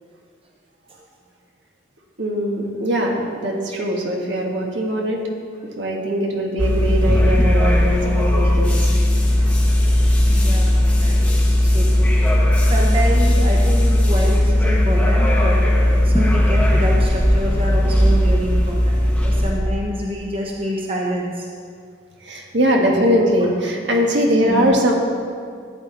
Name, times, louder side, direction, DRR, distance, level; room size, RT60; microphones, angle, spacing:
voice 1, 2.2-5.3 5.8-8.9 22.2-24.9, equal, 65° right, 0 dB, 1.6 m, -21 dB
sound 1, 6.6-19.5, left 1 dB, 5° left, 1.1 m, -16 dB
voice 2, 10.3-12.1 12.6-21.5 22.9-23.2 24.5-24.8, equal, 30° right, -2 dB, 1.1 m, -27 dB
14.0 x 9.3 x 4.0 m, 2.2 s
head